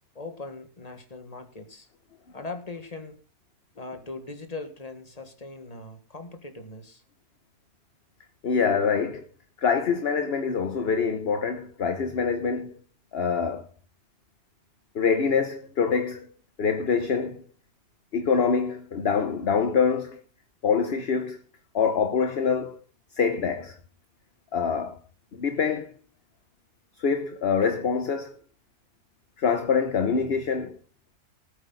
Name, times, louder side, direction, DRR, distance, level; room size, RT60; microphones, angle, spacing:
voice 1, 0.0-1.9 2.3-3.2 3.7-7.0, left 3 dB, 25° left, 1.9 m, -40 dB
voice 2, 8.4-9.2 9.6-12.8 13.1-13.7 14.9-16.3 16.6-17.4 18.1-20.2 20.6-21.4 21.7-22.8 23.1-23.8 24.5-25.0 25.3-25.9 27.0-28.4 29.4-30.8, left 6 dB, 50° left, 1.1 m, -25 dB
19.0 x 8.7 x 4.0 m
omnidirectional pair, 1.5 m